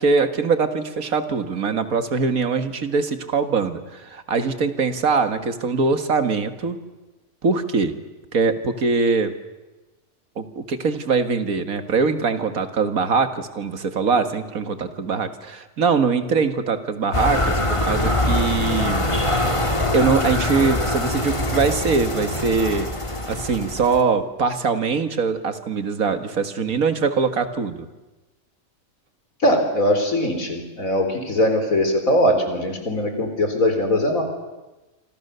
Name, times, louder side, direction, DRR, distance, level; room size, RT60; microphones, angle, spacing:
voice 1, 0.0-6.8 7.4-7.9 8.3-9.3 10.4-19.1 19.9-22.9 23.3-27.9, right 4 dB, 85° right, 9 dB, 2.2 m, -22 dB
sound 1, 17.1-24.0, left 1 dB, 20° left, 2.2 m, -23 dB
voice 2, 29.4-34.2, left 1 dB, 75° left, 6 dB, 4.4 m, -21 dB
27.0 x 26.5 x 6.9 m, 1.1 s
omnidirectional pair, 1.4 m